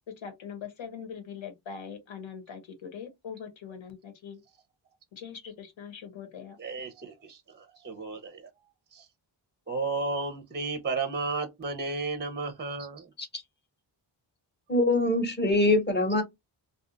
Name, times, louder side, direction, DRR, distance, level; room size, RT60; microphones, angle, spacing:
voice 1, 0.2-4.4 5.1-6.6, left 7 dB, 75° left, 1.1 m, -42 dB
voice 2, 6.6-8.5 8.9-9.1 9.7-13.1, right 3 dB, 25° right, 0.5 m, -33 dB
voice 3, 14.7-16.2, left 2 dB, 20° left, 0.9 m, -23 dB
2.6 x 2.3 x 3.8 m
wide cardioid pair, 170°, 47 cm